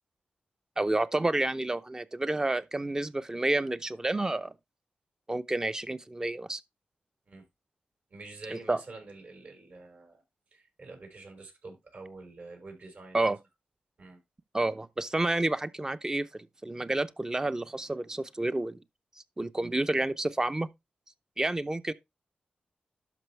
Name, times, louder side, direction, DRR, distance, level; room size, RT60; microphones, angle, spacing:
voice 1, 0.8-4.5 5.3-6.6 8.5-8.8 13.1-13.4 14.5-18.8 19.4-20.7 21.4-21.9, right 2 dB, 20° right, 0.7 m, -29 dB
voice 2, 8.1-10.2 10.5-13.3 14.0-14.2, right 3 dB, 60° right, 5.2 m, -47 dB
12.0 x 5.4 x 3.3 m
wide cardioid pair, 85°, 3 cm